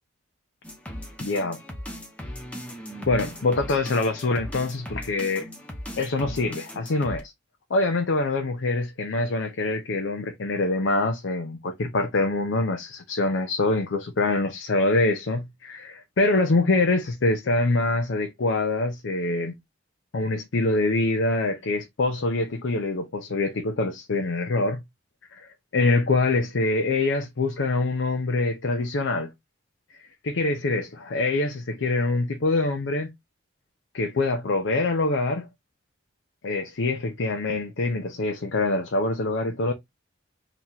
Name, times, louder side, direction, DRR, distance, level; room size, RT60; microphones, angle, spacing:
sound 1, 0.6-7.2, equal, 5° left, 0.8 m, -38 dB
voice 1, 1.2-1.6 3.1-5.5 6.0-7.3 7.7-19.6 20.1-24.8 25.3-29.3 30.0-33.1 33.9-35.5 36.4-39.7, left 2 dB, 65° left, 0.6 m, -25 dB
3.0 x 2.9 x 3.7 m
head